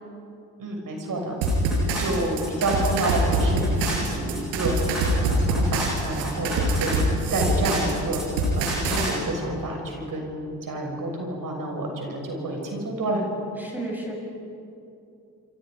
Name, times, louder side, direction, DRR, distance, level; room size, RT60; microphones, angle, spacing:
voice 1, 0.6-1.3 2.0-13.2, right 1 dB, 45° right, 1 dB, 6.7 m, -29 dB
sound 1, 1.4-9.1, right 1 dB, 75° right, 6.9 m, -24 dB
voice 2, 1.9-2.2 13.6-14.2, right 1 dB, 5° right, -2 dB, 8.0 m, -34 dB
28.0 x 26.5 x 5.3 m, 2.6 s
hypercardioid pair, 55°, 45 cm